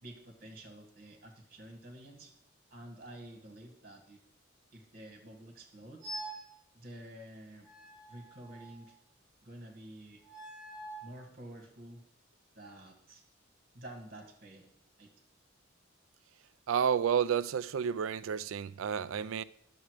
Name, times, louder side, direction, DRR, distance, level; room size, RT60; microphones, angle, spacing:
voice 1, 0.0-2.3 2.7-4.2 4.7-6.1 6.7-7.7 8.1-9.0 9.4-10.2 11.0-12.0 12.6-13.2 13.7-14.7 15.0-15.1, right 1 dB, 50° right, 1.9 m, -50 dB
sound 1, 6.0-6.5 7.6-8.9 10.2-11.1, right 1 dB, 25° left, 5.0 m, -45 dB
voice 2, 16.7-19.4, right 8 dB, 85° right, 0.4 m, -30 dB
10.0 x 7.1 x 4.9 m
head